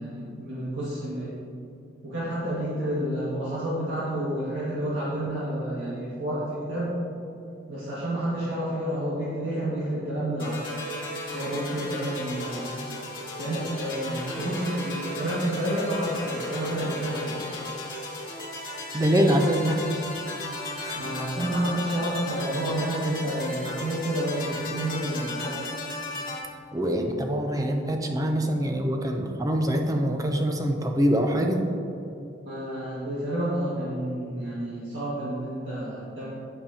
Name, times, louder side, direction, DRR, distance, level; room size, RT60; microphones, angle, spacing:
voice 1, 0.0-1.3 2.0-7.0 7.7-10.7 11.3-12.7 13.4-17.4 21.0-25.6 32.4-36.3, right 1 dB, 70° right, -9 dB, 1.8 m, -30 dB
sound 1, 10.4-26.4, left 2 dB, 25° left, 1.8 m, -35 dB
voice 2, 18.9-19.8 20.8-21.0 26.7-31.6, equal, 20° right, 3 dB, 0.6 m, -24 dB
8.8 x 7.9 x 2.8 m, 2.7 s
head